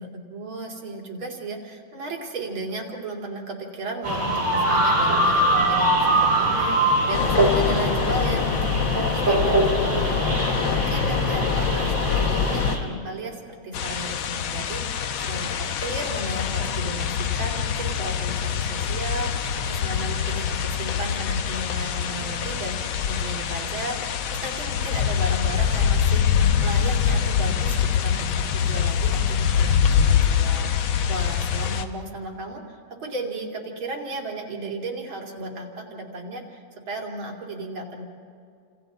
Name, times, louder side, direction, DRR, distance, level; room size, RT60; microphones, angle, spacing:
voice 1, 0.0-38.0, right 2 dB, 85° right, -1 dB, 3.5 m, -35 dB
sound 1, 4.0-12.8, right 1 dB, 25° right, 4.0 m, -23 dB
sound 2, 7.1-12.8, left 7 dB, 70° left, 1.6 m, -25 dB
sound 3, 13.7-31.8, left 8 dB, 90° left, 1.8 m, -24 dB
29.5 x 27.0 x 4.0 m, 2.4 s
omnidirectional pair, 2.2 m